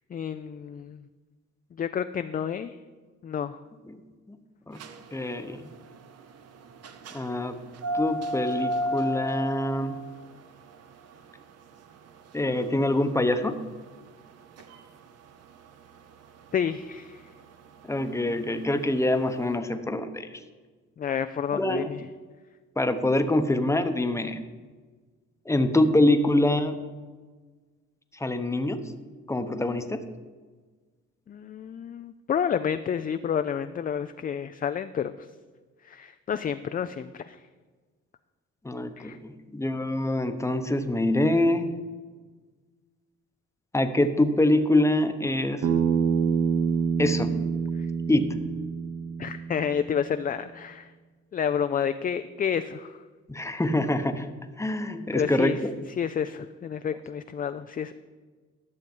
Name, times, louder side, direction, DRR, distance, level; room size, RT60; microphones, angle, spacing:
voice 1, 0.1-1.0 1.8-2.8 3.2-3.6 16.5-17.2 21.0-22.0 31.3-35.3 35.9-37.4 39.0-39.2 49.2-50.9 51.3-52.9 55.1-55.6 56.0-57.9, left 8 dB, 30° left, 10 dB, 0.4 m, -30 dB
sound 1, 4.7-19.5, left 1 dB, 55° right, 0.9 m, -36 dB
voice 2, 5.1-5.7 7.1-7.6 7.9-10.0 12.3-13.6 17.8-20.4 21.5-21.9 22.8-24.4 25.5-26.8 28.1-28.9 29.3-30.0 38.6-41.7 43.7-45.7 47.0-47.4 48.1-48.3 53.3-54.3 54.6-55.7, left 1 dB, 10° left, 8 dB, 0.8 m, -25 dB
Bass guitar, 45.6-49.9, right 6 dB, 85° right, 1.3 m, -26 dB
12.0 x 6.5 x 5.4 m, 1.4 s
cardioid pair, 90°, 30 cm